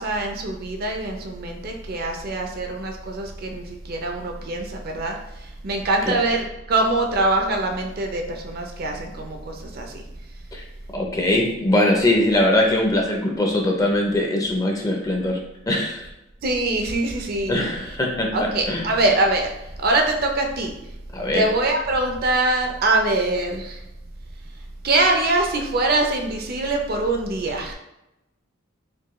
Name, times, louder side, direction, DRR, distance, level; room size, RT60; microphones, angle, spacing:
voice 1, 0.0-5.2 5.6-10.0 16.4-17.6 18.3-19.5 19.8-20.7 21.3-23.8 24.8-27.7, right 2 dB, 45° right, 3 dB, 0.5 m, -23 dB
voice 2, 10.9-15.4 15.7-16.0 17.5-18.3 18.7-18.9 21.1-21.5, left 1 dB, 15° left, 0 dB, 0.4 m, -21 dB
4.5 x 2.2 x 3.0 m, 0.91 s
head